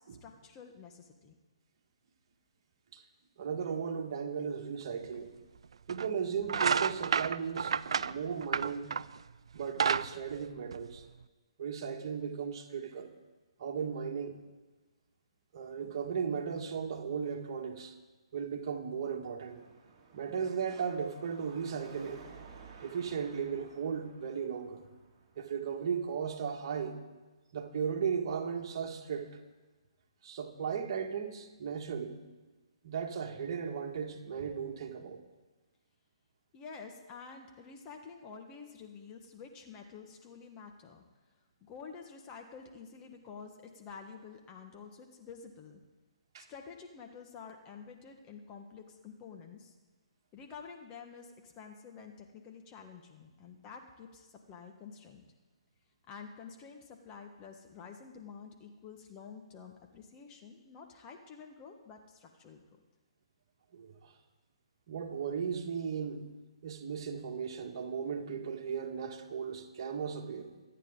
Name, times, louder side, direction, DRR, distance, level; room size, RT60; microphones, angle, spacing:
voice 1, 0.0-1.3 36.5-41.0 41.6-45.8 46.4-49.7 50.3-55.2 56.1-62.6, left 5 dB, 25° left, 3 dB, 1.4 m, -49 dB
voice 2, 3.4-5.3 5.9-8.9 9.5-11.0 11.6-13.1 13.6-14.4 15.5-17.9 18.3-19.6 20.1-22.2 22.8-24.9 25.4-27.0 27.5-29.4 30.2-32.2 32.8-35.2 46.3-46.5 63.7-64.1 64.9-66.2 66.6-70.5, right 6 dB, 50° right, 3 dB, 1.9 m, -36 dB
sound 1, 5.1-5.2 5.9-6.1 6.4-9.2 9.6-11.2, right 6 dB, 65° right, 0.4 m, -30 dB
Car passing by / Traffic noise roadway noise / Engine, 19.4-26.7, right 5 dB, 25° right, 3.2 m, -56 dB
25.5 x 9.3 x 3.9 m, 1.2 s
figure-of-eight pair, 130°, 3 cm